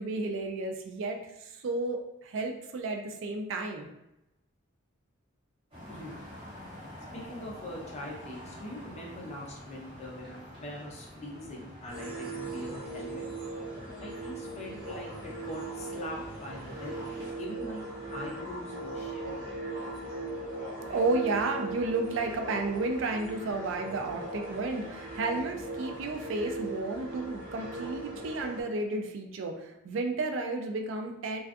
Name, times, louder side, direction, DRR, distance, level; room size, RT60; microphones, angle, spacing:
voice 1, 0.0-3.9 20.9-31.4, right 3 dB, 65° right, 4 dB, 0.3 m, -32 dB
sound 1, 5.7-17.3, equal, 25° right, 0.8 m, -47 dB
voice 2, 7.1-13.2 14.0-17.0 17.4-17.8 18.1-19.4, left 1 dB, 35° left, -3 dB, 0.6 m, -42 dB
sound 2, 11.9-28.6, right 2 dB, 45° right, 1.1 m, -39 dB
2.3 x 2.3 x 2.5 m, 0.90 s
head